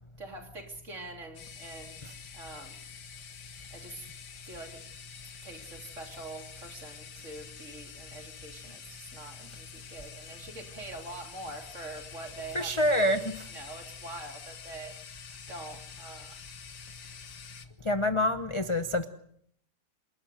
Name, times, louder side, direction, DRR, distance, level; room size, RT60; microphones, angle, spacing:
voice 1, 0.2-2.0 2.3-2.8 3.7-4.0 4.4-4.8 5.4-13.2 13.5-14.9 15.5-16.4, right 2 dB, 45° right, 4 dB, 3.6 m, -44 dB
sound 1, 1.4-17.7, left 7 dB, 80° left, 2.0 m, -48 dB
voice 2, 12.5-13.2 17.8-19.1, left 1 dB, 25° left, 8 dB, 0.8 m, -26 dB
27.5 x 12.5 x 9.3 m, 0.68 s
omnidirectional pair, 1.8 m